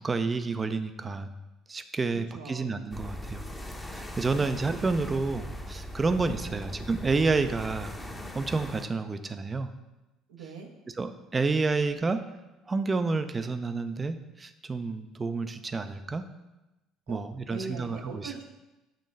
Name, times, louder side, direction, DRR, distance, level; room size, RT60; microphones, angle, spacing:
voice 1, 0.0-1.3 1.7-3.5 3.9-7.9 8.3-9.7 11.0-12.2 12.7-16.3 17.1-18.3, right 3 dB, 25° right, 9 dB, 0.5 m, -29 dB
voice 2, 2.1-2.7 6.5-6.6 10.3-10.7 17.1-17.2 17.5-18.4, right 5 dB, 80° right, 1 dB, 0.9 m, -41 dB
sound 1, 2.9-8.9, equal, 10° left, 0.8 m, -39 dB
6.5 x 3.1 x 5.3 m, 1.0 s
hypercardioid pair, 60°, 0 cm